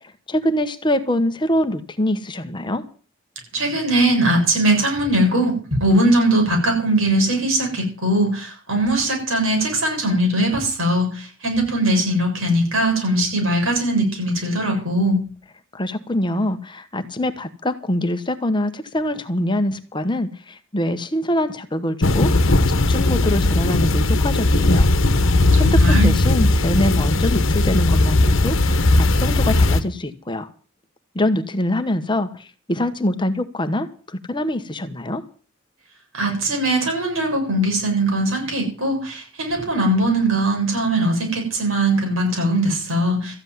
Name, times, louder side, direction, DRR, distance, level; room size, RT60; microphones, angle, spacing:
voice 1, 0.0-2.9 15.7-24.9 25.6-30.5 31.1-35.2, left 1 dB, 25° left, 9 dB, 1.1 m, -24 dB
voice 2, 3.5-15.2 25.5-26.1 36.1-43.3, right 1 dB, 80° right, 2 dB, 7.4 m, -20 dB
sound 1, 22.0-29.8, left 2 dB, 65° left, 1.2 m, -17 dB
14.0 x 7.9 x 9.5 m, 0.39 s
head